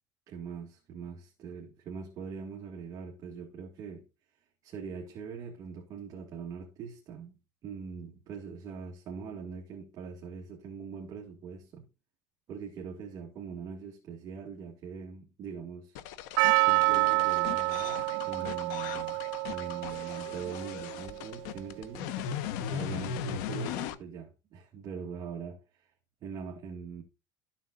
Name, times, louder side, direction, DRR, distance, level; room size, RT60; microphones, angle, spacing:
voice 1, 0.3-4.0 4.6-7.4 7.6-11.8 12.5-16.0 16.6-18.0 18.3-19.2 19.5-25.9 26.2-27.0, right 6 dB, 35° right, 2.1 m, -42 dB
sound 1, 16.0-24.0, left 8 dB, 85° left, 1.2 m, -38 dB
Percussion, 16.4-21.3, right 27 dB, 75° right, 0.4 m, -28 dB
13.5 x 7.3 x 2.5 m
cardioid pair, 160°, 10 cm